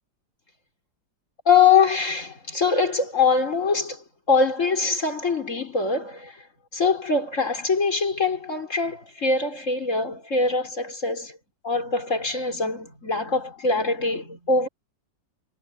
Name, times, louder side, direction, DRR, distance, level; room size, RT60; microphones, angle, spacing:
voice 1, 1.5-6.4 6.7-11.4 11.6-14.7, left 4 dB, 40° left, 5.2 m, -23 dB
omnidirectional pair, 2.0 m